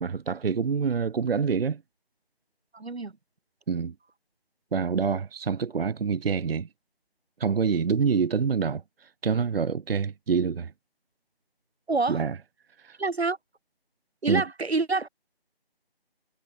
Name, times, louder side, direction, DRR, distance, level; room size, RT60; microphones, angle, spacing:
voice 1, 0.0-1.8 3.7-3.9 4.7-6.7 7.4-10.7 12.1-12.4 12.8-13.0 14.3-14.4, right 6 dB, 65° right, 0.5 m, -26 dB
voice 2, 2.7-3.1 11.9-12.2 13.0-13.4 14.2-15.1, right 3 dB, 90° right, 1.0 m, -27 dB
figure-of-eight pair, 170°, 31 cm